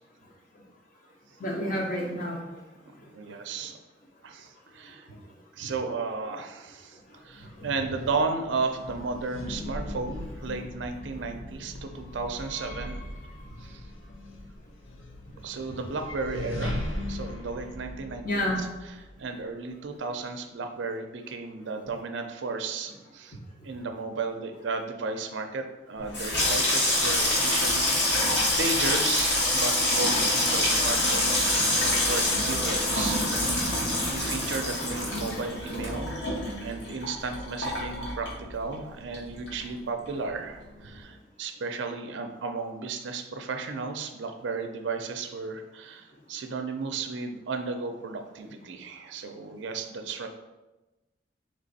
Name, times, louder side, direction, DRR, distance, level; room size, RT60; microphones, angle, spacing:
voice 1, 1.4-2.5 3.0-3.1 4.8-5.2 5.6-5.7 7.1-7.7 18.2-18.6 23.6-23.7, left 1 dB, 45° left, -1 dB, 0.9 m, -31 dB
voice 2, 3.1-3.8 4.2-5.1 5.5-7.0 7.2-13.0 13.6-13.8 15.4-18.3 18.9-23.4 23.6-36.1 36.6-50.3, right 4 dB, 70° right, 6 dB, 0.5 m, -34 dB
sound 1, 7.3-19.4, left 1 dB, 85° left, 0.6 m, -39 dB
Water tap faucet / Sink (filling or washing), 26.0-38.8 39.1-39.8 40.1-40.4, left 1 dB, 60° left, 1.2 m, -26 dB
3.3 x 3.3 x 4.0 m, 1.1 s
head